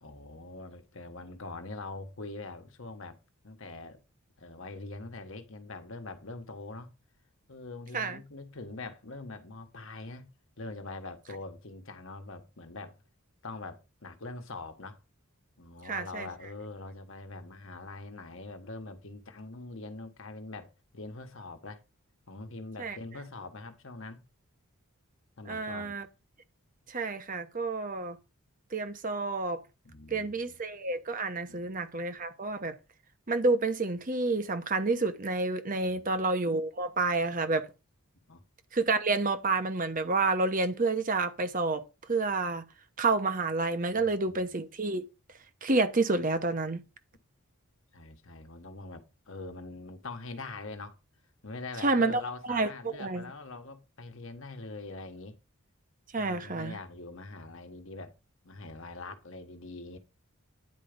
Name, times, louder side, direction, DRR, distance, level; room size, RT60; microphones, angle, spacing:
voice 1, 0.0-3.2 3.4-4.0 4.4-6.9 7.5-10.3 10.6-13.0 13.4-15.0 15.6-21.8 22.3-24.2 25.4-26.0 29.8-30.6 31.5-31.7 35.9-36.2 38.3-38.4 43.9-44.4 47.9-51.0 51.4-55.4 56.1-58.1 58.4-60.0, left 3 dB, 60° left, 1.3 m, -43 dB
voice 2, 15.8-16.3 22.8-23.0 25.5-26.1 26.9-28.2 28.7-29.6 30.1-32.8 33.3-37.7 38.7-42.6 43.0-46.8 51.8-52.2 52.5-53.3 56.1-56.8, right 3 dB, 35° right, 0.8 m, -29 dB
9.7 x 4.5 x 5.2 m
head